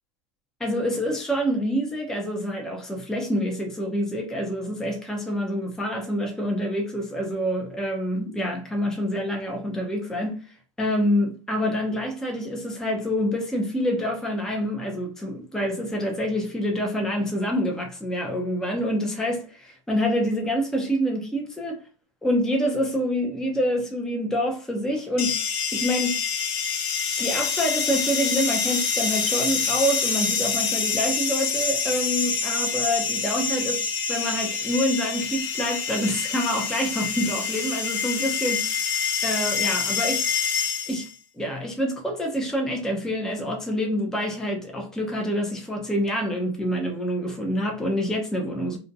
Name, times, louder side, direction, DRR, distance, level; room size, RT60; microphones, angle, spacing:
voice 1, 0.6-10.4 10.8-21.8 22.2-25.4 25.7-26.2 27.2-33.8 34.1-40.6 40.9-41.1 41.4-48.8, equal, 5° left, 0.5 m, -27 dB
sound 1, 25.2-41.1, left 6 dB, 45° left, 0.7 m, -26 dB
2.5 x 2.1 x 2.5 m
hypercardioid pair, 115°, 17 cm